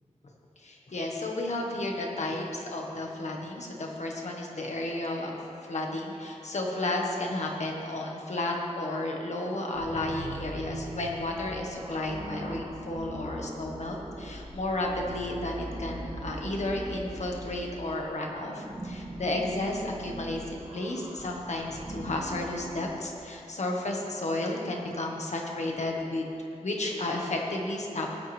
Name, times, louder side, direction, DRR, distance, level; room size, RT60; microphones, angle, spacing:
voice 1, 0.6-26.3 26.6-28.1, left 2 dB, 65° left, 0 dB, 1.7 m, -32 dB
sound 1, 9.7-17.7 18.2-22.7, right 1 dB, 60° right, 2.8 m, -40 dB
19.5 x 9.2 x 3.6 m, 2.7 s
wide cardioid pair, 75°, 12 cm